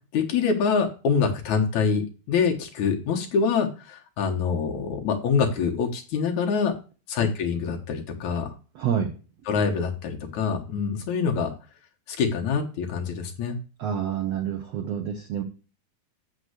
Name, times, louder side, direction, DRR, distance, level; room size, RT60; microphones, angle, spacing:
voice 1, 0.1-6.8 7.1-8.5 9.5-11.5 12.1-13.6, left 5 dB, 65° left, 3 dB, 2.2 m, -25 dB
voice 2, 8.7-9.1 13.8-15.4, right 8 dB, 85° right, 6 dB, 1.4 m, -28 dB
7.5 x 6.5 x 8.1 m, 0.35 s
omnidirectional pair, 4.2 m